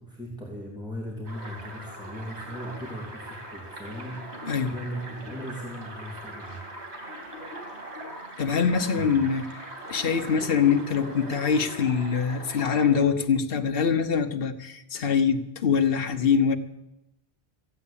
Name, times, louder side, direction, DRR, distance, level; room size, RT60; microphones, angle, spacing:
voice 1, 0.0-7.3 8.8-9.2, equal, 5° right, -3 dB, 2.9 m, -39 dB
sound 1, 1.3-13.1, right 1 dB, 85° right, 3.2 m, -41 dB
voice 2, 8.4-9.4 9.9-16.6, left 6 dB, 60° left, 6 dB, 1.2 m, -24 dB
14.5 x 8.6 x 8.5 m, 0.90 s
omnidirectional pair, 1.1 m